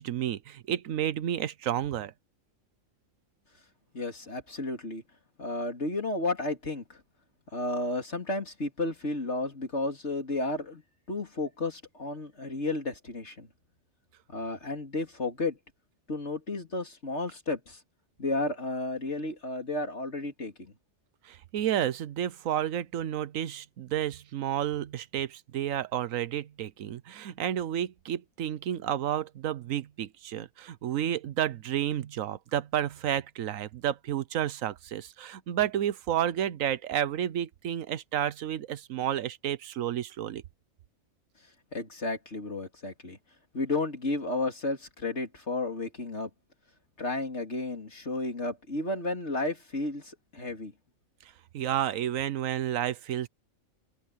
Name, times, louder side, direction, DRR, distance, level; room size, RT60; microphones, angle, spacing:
voice 1, 0.0-2.1 21.2-40.4 51.5-53.3, right 11 dB, 85° right, 1.1 m, -31 dB
voice 2, 3.9-5.0 5.4-7.0 7.5-10.8 11.1-13.5 14.3-15.6 16.1-17.8 18.2-20.7 41.7-43.2 43.5-46.3 47.0-50.7, left 2 dB, 55° left, 3.6 m, -32 dB
omnidirectional pair, 1.4 m